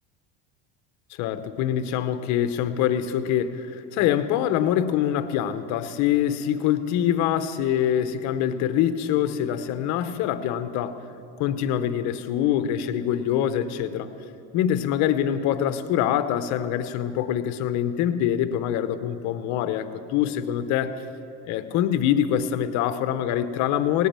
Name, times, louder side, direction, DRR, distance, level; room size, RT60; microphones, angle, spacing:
voice 1, 1.2-11.0 11.4-14.1 14.5-21.0 21.5-24.1, left 10 dB, 55° left, 11 dB, 0.9 m, -24 dB
18.5 x 8.5 x 8.8 m, 2.8 s
cardioid pair, 160°, 34 cm